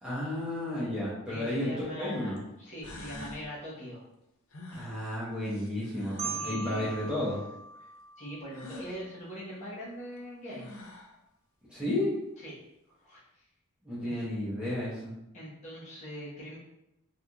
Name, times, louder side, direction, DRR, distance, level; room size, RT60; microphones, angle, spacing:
voice 1, 0.0-2.4 4.7-7.4 11.7-12.1 13.8-15.1, left 1 dB, 5° right, -10 dB, 0.9 m, -32 dB
sound 1, 1.3-1.4 2.4-2.5 2.8-3.4 4.5-6.5 8.5-8.9 10.2-10.3 10.5-11.2, left 1 dB, 70° left, 0.6 m, -45 dB
voice 2, 1.3-4.0 6.2-7.0 7.8-7.9 8.2-10.7 12.4-12.6 13.0-13.2 14.0-14.1 15.3-16.6, equal, 35° left, -9 dB, 1.1 m, -42 dB
Marimba xylophone, 6.2-9.0, right 4 dB, 50° right, 0.4 m, -40 dB
3.4 x 2.7 x 2.3 m, 0.86 s
head